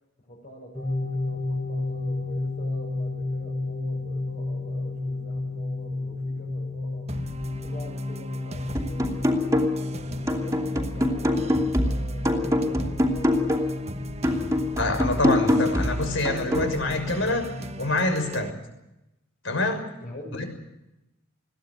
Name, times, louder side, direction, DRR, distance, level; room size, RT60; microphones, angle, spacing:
voice 1, 0.3-7.1 7.6-13.7 20.0-20.4, equal, 40° left, -3 dB, 6.6 m, -45 dB
sound 1, 0.7-17.9, left 2 dB, 15° left, 3.2 m, -33 dB
sound 2, 7.1-18.5, right 1 dB, 30° right, 1.2 m, -39 dB
sound 3, 8.7-9.9 10.3-13.8 14.2-16.7, left 1 dB, 15° right, 2.9 m, -24 dB
voice 2, 14.8-17.5 17.8-18.6 19.4-19.8 20.4-20.5, left 2 dB, 65° left, 6 dB, 6.1 m, -26 dB
22.0 x 17.5 x 9.7 m, 0.92 s
head